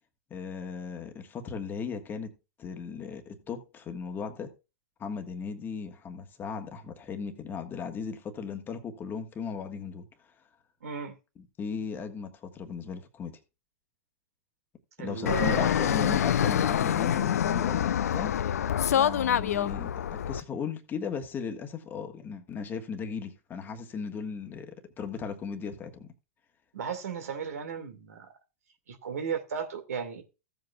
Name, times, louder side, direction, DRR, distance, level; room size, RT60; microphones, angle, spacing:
voice 1, 0.3-2.3 2.6-4.5 5.0-10.0 11.4-13.4 15.0-18.4 18.9-26.1, left 6 dB, 25° left, 1.4 m, -37 dB
voice 2, 10.8-11.1 15.0-15.7 26.7-28.3 28.9-30.2, right 7 dB, 70° right, 2.1 m, -35 dB
Fixed-wing aircraft airplane, 15.3-20.4, left 9 dB, 75° left, 0.5 m, -26 dB
15.5 x 7.8 x 2.3 m
hypercardioid pair, 110°, 9 cm